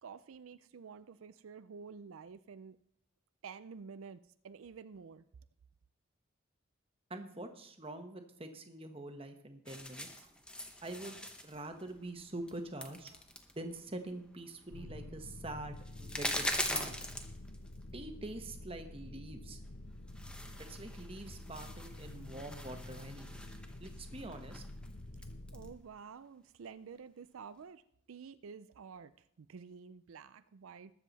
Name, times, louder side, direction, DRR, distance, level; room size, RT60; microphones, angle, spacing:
voice 1, 0.0-2.8 3.4-5.2 25.5-27.8 28.1-29.1 29.4-30.9, right 5 dB, 80° right, 13 dB, 0.4 m, -50 dB
voice 2, 7.1-10.3 10.8-13.2 13.5-17.0 17.9-19.6 20.7-23.4 23.8-24.6, right 2 dB, 25° right, 6 dB, 1.1 m, -45 dB
sound 1, 9.7-17.8 18.1-18.3 19.6-19.7 20.1-25.7, left 1 dB, 5° left, 0.9 m, -43 dB
sound 2, 14.7-25.7, left 1 dB, 50° left, 0.8 m, -48 dB
20.5 x 7.6 x 4.1 m, 0.72 s
head